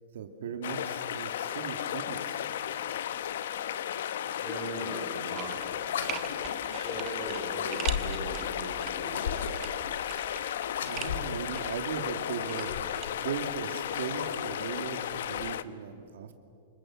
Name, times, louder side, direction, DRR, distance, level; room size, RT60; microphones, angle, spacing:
voice 1, 0.1-2.4 10.4-16.3, right 6 dB, 75° right, 6 dB, 2.2 m, -38 dB
sound 1, 0.6-15.6, left 10 dB, 65° left, 0.9 m, -35 dB
voice 2, 4.3-5.8 6.6-9.5, equal, 10° left, -2 dB, 6.6 m, -40 dB
sound 2, 5.3-5.8 6.1-8.9 9.3-11.2 11.5-13.1 13.4-13.5, right 13 dB, 25° right, 1.2 m, -41 dB
sound 3, 5.8-6.7 7.5-8.3 9.0-9.8 10.7-11.4 12.2-13.1 13.8-14.7, left 7 dB, 85° left, 2.4 m, -36 dB
28.5 x 25.0 x 7.7 m, 2.4 s
supercardioid pair, 180°, 0 cm